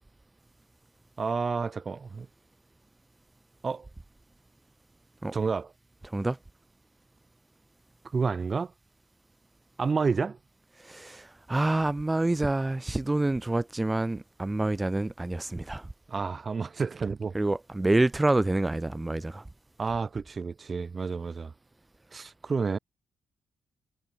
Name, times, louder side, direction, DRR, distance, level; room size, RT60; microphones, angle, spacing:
voice 1, 1.2-2.3 3.6-3.9 5.3-5.7 8.1-8.7 9.8-10.4 16.1-17.3 19.8-21.5 22.1-22.8, right 5 dB, 35° right, 2.2 m, -30 dB
voice 2, 6.0-6.4 10.8-15.9 17.3-19.5, right 2 dB, 15° right, 2.0 m, -27 dB
cardioid pair, 90°, 0 cm